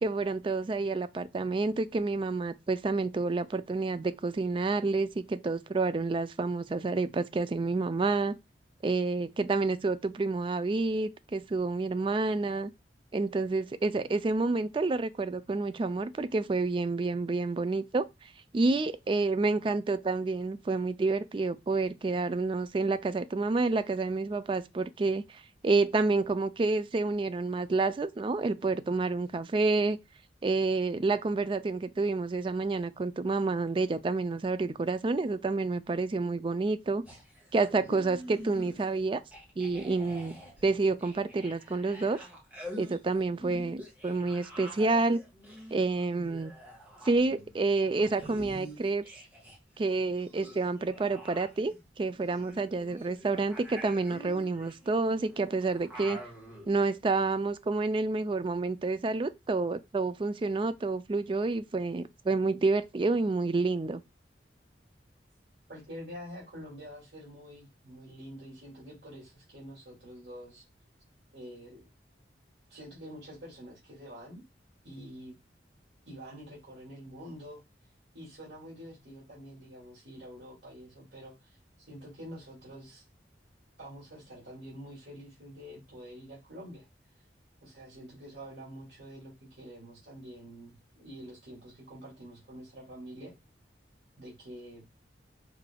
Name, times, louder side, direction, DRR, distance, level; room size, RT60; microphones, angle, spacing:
voice 1, 0.0-8.3 8.8-12.7 13.1-18.1 18.5-25.2 25.6-30.0 30.4-37.0 37.5-39.2 39.6-40.3 40.6-42.2 42.8-45.2 45.7-46.5 47.0-49.0 49.8-56.2 56.7-64.0, right 3 dB, 30° right, 0.3 m, -29 dB
sound 1, 37.1-39.0 39.3-49.6 49.8-56.7, equal, 10° right, 1.5 m, -47 dB
voice 2, 65.7-70.6 71.3-71.8 72.7-74.4 74.8-75.4 76.1-77.6 78.1-83.0 83.8-86.9 87.6-93.3 94.2-94.8, equal, 65° right, 2.3 m, -47 dB
4.8 x 3.3 x 2.2 m
head